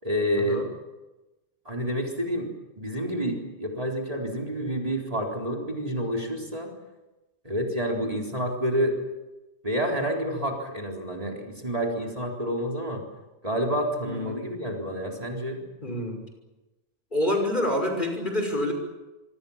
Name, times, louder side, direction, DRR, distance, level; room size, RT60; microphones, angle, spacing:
voice 1, 0.0-0.6 1.7-2.5 2.8-6.7 7.4-9.0 9.6-13.0 13.4-15.6, equal, 30° right, 0 dB, 4.1 m, -28 dB
voice 2, 14.1-14.4 15.8-16.2 17.1-18.7, left 1 dB, 40° left, 4 dB, 6.1 m, -27 dB
26.5 x 25.0 x 7.3 m, 1.1 s
omnidirectional pair, 1.2 m